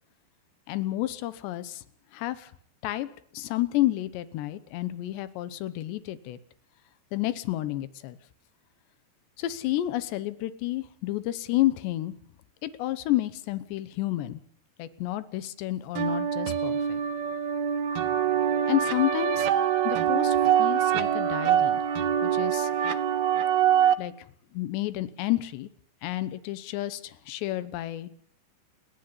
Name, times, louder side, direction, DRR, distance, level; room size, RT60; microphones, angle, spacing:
voice 1, 0.7-1.8 2.1-2.5 2.8-3.1 3.3-6.4 7.1-8.2 9.4-12.1 12.6-14.4 14.8-17.0 18.7-19.5 19.8-21.8 22.2-22.7 24.0-24.1 24.5-25.7 26.0-28.1, left 15 dB, 85° left, 14 dB, 3.3 m, -30 dB
sound 1, 15.9-23.9, right 9 dB, 70° right, 2.8 m, -24 dB
28.5 x 11.0 x 9.7 m, 0.62 s
omnidirectional pair, 4.9 m